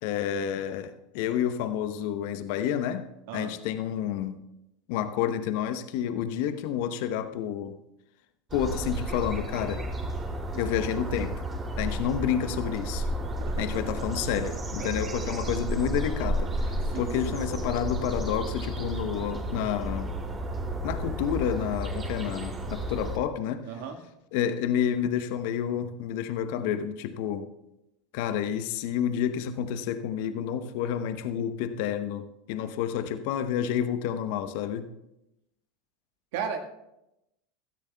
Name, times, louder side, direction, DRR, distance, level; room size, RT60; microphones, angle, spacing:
voice 1, 0.0-3.1 3.3-4.4 4.9-7.8 8.5-9.8 10.5-11.4 11.8-13.1 13.6-20.1 20.8-23.6 24.3-27.5 28.1-34.9, left 9 dB, 60° left, 10 dB, 0.9 m, -29 dB
sound 1, 8.5-23.2, right 1 dB, 25° right, 2.7 m, -32 dB
voice 2, 13.2-13.9 14.8-14.9 16.9-17.1 23.7-24.0 36.3-36.6, right 7 dB, 65° right, 4 dB, 1.6 m, -35 dB
18.0 x 13.5 x 2.3 m, 0.87 s
hypercardioid pair, 85°, 0 cm